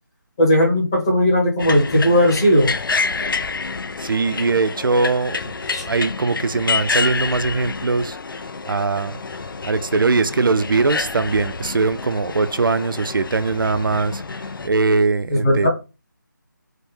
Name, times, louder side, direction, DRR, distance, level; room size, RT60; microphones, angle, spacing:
voice 1, 0.4-2.7 5.7-5.8 15.3-15.7, equal, 15° left, 0.7 m, -17 dB
sound 1, 1.6-14.7, left 4 dB, 85° left, 0.4 m, -28 dB
voice 2, 4.0-5.5 5.8-8.2 8.7-9.2 9.6-15.7, right 4 dB, 80° right, 0.4 m, -21 dB
3.3 x 2.1 x 3.2 m
figure-of-eight pair, 175°, 11 cm